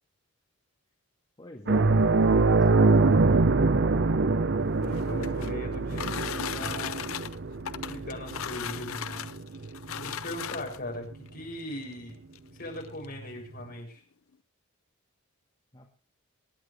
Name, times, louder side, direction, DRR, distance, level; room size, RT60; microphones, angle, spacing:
voice 1, 1.4-3.6 15.7-16.0, left 1 dB, 25° left, 0 dB, 1.9 m, -44 dB
sound 1, 1.7-10.6 10.9-11.1 13.2-13.3, right 3 dB, 55° right, 0.7 m, -24 dB
sound 2, 4.7-10.9 11.8-11.9 12.3-12.4 12.7-13.1, left 9 dB, 75° left, 0.6 m, -37 dB
voice 2, 4.7-7.0 7.7-9.3 9.9-12.2 12.6-14.0, left 1 dB, 45° left, -1 dB, 7.3 m, -39 dB
25.5 x 9.7 x 3.4 m, 0.35 s
head